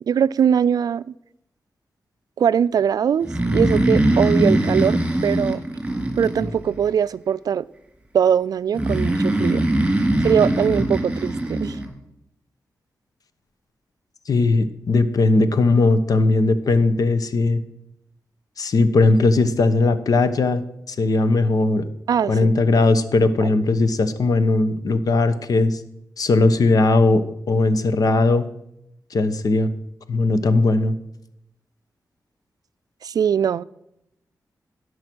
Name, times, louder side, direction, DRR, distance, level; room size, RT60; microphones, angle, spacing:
voice 1, 0.1-1.1 2.4-5.6 6.2-7.7 8.1-9.6 10.2-11.8 22.1-22.5 33.0-33.6, right 8 dB, 80° right, 0.3 m, -21 dB
Breathing, 3.2-6.9 8.7-11.8, right 1 dB, 15° right, 3.1 m, -21 dB
voice 2, 14.3-17.6 18.6-20.6 20.9-21.9 22.2-25.8 26.2-28.5 29.1-29.7 30.1-31.0, left 3 dB, 70° left, 0.9 m, -18 dB
17.0 x 6.5 x 6.2 m
cardioid pair, 75°, 6 cm